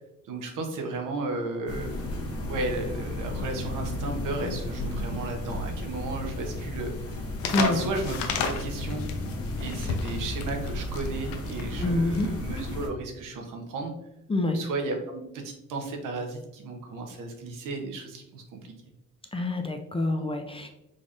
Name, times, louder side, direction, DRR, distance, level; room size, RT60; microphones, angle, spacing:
voice 1, 0.3-1.9 2.5-6.9 7.6-8.2 8.4-9.1 9.6-13.9 14.5-18.7, right 3 dB, 70° right, 2 dB, 1.0 m, -34 dB
sound 1, 1.7-12.9, left 1 dB, 45° left, 1.0 m, -34 dB
sound 2, 7.4-12.8, left 6 dB, 90° left, 0.6 m, -33 dB
voice 2, 11.8-12.3 14.3-14.6 19.3-20.7, left 2 dB, 15° left, 4 dB, 0.5 m, -26 dB
4.0 x 3.4 x 2.5 m, 0.90 s
cardioid pair, 85°, 33 cm